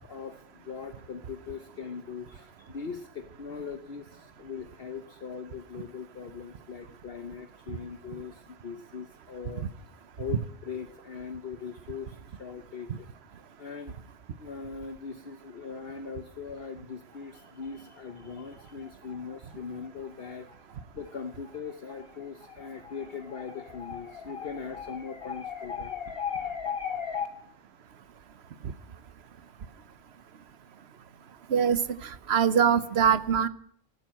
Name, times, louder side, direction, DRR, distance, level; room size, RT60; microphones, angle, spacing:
voice 1, 0.1-9.7 10.2-14.0 14.4-27.3, left 6 dB, 60° left, 7 dB, 1.1 m, -39 dB
voice 2, 31.5-33.5, right 7 dB, 65° right, 15 dB, 1.0 m, -23 dB
14.5 x 12.0 x 7.5 m, 0.65 s
omnidirectional pair, 1.2 m